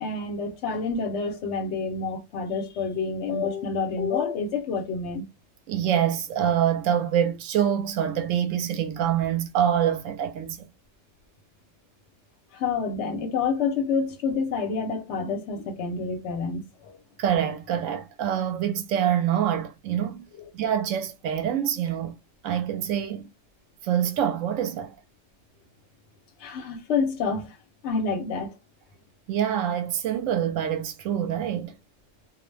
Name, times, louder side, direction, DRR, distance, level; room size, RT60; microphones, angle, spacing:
voice 1, 0.0-5.2 12.5-17.0 26.4-27.6 27.8-28.5, left 5 dB, 65° left, 0.9 m, -28 dB
voice 2, 5.7-10.7 17.2-20.3 20.5-22.1 22.4-23.3 23.8-25.0 29.3-31.7, right 9 dB, 85° right, 1.0 m, -25 dB
2.4 x 2.1 x 3.1 m
omnidirectional pair, 1.3 m